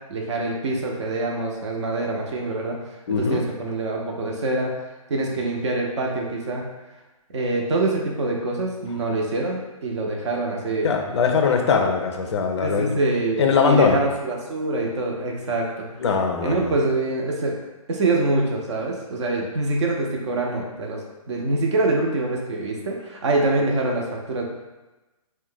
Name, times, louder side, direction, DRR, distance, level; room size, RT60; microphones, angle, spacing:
voice 1, 0.1-2.8 3.1-4.7 5.1-6.7 7.3-10.9 12.6-15.9 16.4-17.6 17.9-24.4, right 2 dB, 50° right, 0 dB, 0.6 m, -25 dB
voice 2, 3.1-3.4 10.8-12.9 13.4-14.0 16.0-16.7, left 5 dB, 50° left, 4 dB, 0.4 m, -21 dB
2.4 x 2.2 x 3.7 m, 1.1 s
hypercardioid pair, 145°, 19 cm